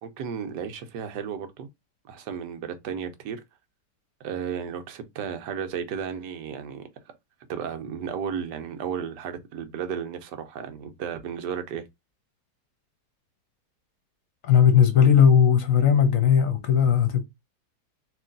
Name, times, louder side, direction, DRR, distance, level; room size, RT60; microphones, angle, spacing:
voice 1, 0.0-1.7 2.0-3.4 4.2-6.9 7.5-11.9, right 7 dB, 90° right, 1.4 m, -33 dB
voice 2, 14.4-17.2, left 8 dB, 60° left, 1.0 m, -18 dB
3.2 x 3.0 x 3.8 m
omnidirectional pair, 1.8 m